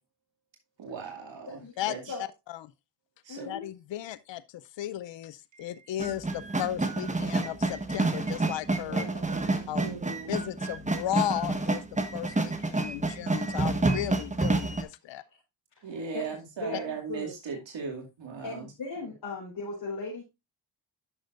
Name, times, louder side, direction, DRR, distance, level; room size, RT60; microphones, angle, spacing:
voice 1, 0.8-1.6 1.9-2.0 3.3-3.5 8.8-10.4 15.8-18.6, right 5 dB, 75° right, 2.5 m, -38 dB
voice 2, 1.8-2.7 3.4-4.4 4.8-9.1 9.7-10.0 10.3-11.8 12.1-15.2, left 13 dB, 75° left, 0.7 m, -35 dB
voice 3, 3.3-3.6 15.8-17.3 18.4-20.2, left 3 dB, 55° left, 4.4 m, -38 dB
civil war music, 6.0-14.8, right 2 dB, 15° right, 1.4 m, -28 dB
11.0 x 6.5 x 2.5 m
cardioid pair, 85°, 45 cm